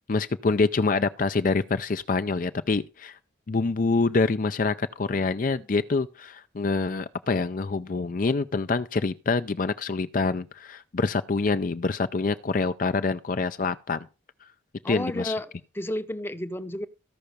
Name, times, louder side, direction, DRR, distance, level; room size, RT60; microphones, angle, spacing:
voice 1, 0.0-3.2 3.5-14.1 14.9-15.3, left 3 dB, 45° left, 0.5 m, -26 dB
voice 2, 14.8-16.9, left 1 dB, 10° left, 0.8 m, -32 dB
14.5 x 5.7 x 6.6 m
head